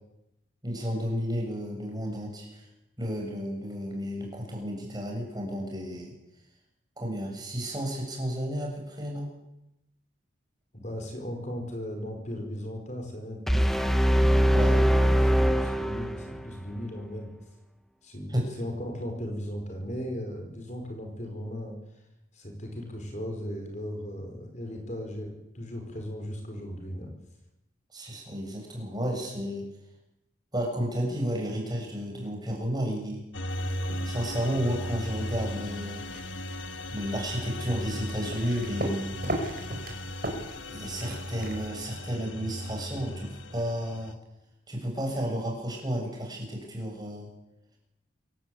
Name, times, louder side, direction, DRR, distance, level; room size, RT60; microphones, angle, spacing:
voice 1, 0.6-2.7 3.0-6.1 7.0-9.3 14.5-14.8 18.3-18.5 27.9-29.7 30.5-33.2 34.0-36.0 36.9-39.1 40.7-44.2 44.7-47.3, equal, 20° right, 1 dB, 7.6 m, -32 dB
voice 2, 10.7-13.8 14.7-14.9 15.2-17.3 18.0-21.8 22.3-27.1, equal, 40° left, 4 dB, 5.2 m, -37 dB
sound 1, 13.5-16.5, equal, ahead, 1.2 m, -22 dB
sound 2, 33.3-44.1, left 1 dB, 80° left, 1.7 m, -37 dB
sound 3, 33.5-41.7, right 1 dB, 50° right, 5.3 m, -39 dB
26.5 x 17.0 x 8.7 m, 0.88 s
head